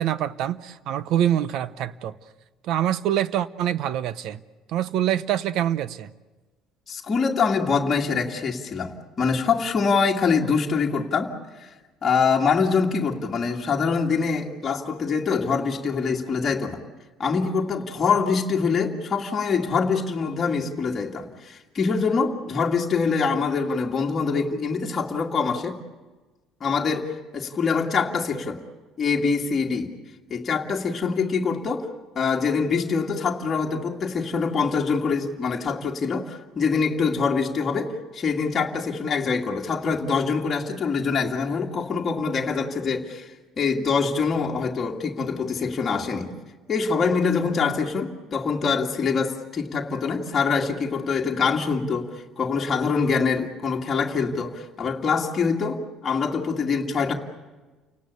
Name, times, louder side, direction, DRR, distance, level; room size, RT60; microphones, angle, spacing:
voice 1, 0.0-2.2 2.6-4.4 4.7-6.1, right 11 dB, 55° right, 0.8 m, -25 dB
voice 2, 6.9-11.3 11.6-11.7 12.0-16.8 17.2-25.8 26.6-28.6 29.0-29.9 30.3-31.9 32.2-43.3 43.6-46.3 46.7-52.1 52.4-57.1, left 5 dB, 25° left, 2.2 m, -24 dB
30.0 x 18.5 x 8.3 m
cardioid pair, 175°, 0 cm